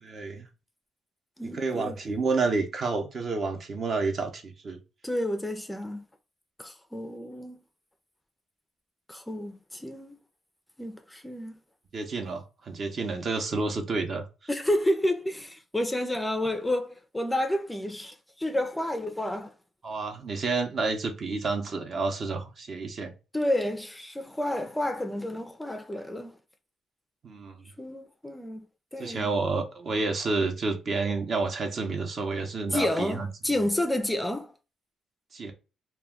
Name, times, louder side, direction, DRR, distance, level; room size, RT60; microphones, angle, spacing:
voice 1, 0.0-0.5 1.5-4.8 11.9-14.3 19.8-23.1 27.2-27.7 29.0-33.3 35.3-35.5, right 3 dB, 50° right, 0.6 m, -29 dB
voice 2, 1.4-1.9 5.0-6.0 6.6-7.6 9.1-10.2 10.8-11.6 14.5-19.5 23.3-26.3 27.8-28.7 28.9-29.3 32.7-34.5, left 1 dB, 10° left, 0.4 m, -30 dB
2.2 x 2.2 x 3.4 m
cardioid pair, 90°, 0 cm